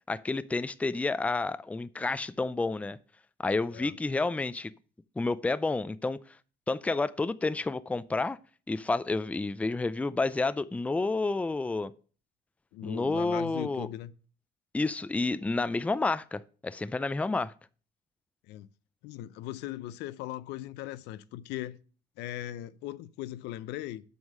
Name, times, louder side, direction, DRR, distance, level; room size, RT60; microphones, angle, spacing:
voice 1, 0.1-3.0 3.4-4.7 5.2-6.2 6.7-8.4 8.7-11.9 12.8-13.9 14.7-17.5, left 3 dB, 10° left, 0.4 m, -30 dB
voice 2, 12.7-14.1 18.5-18.7 19.0-21.8 22.2-24.0, left 14 dB, 90° left, 0.6 m, -39 dB
7.9 x 5.5 x 6.4 m
cardioid pair, 110°, 17 cm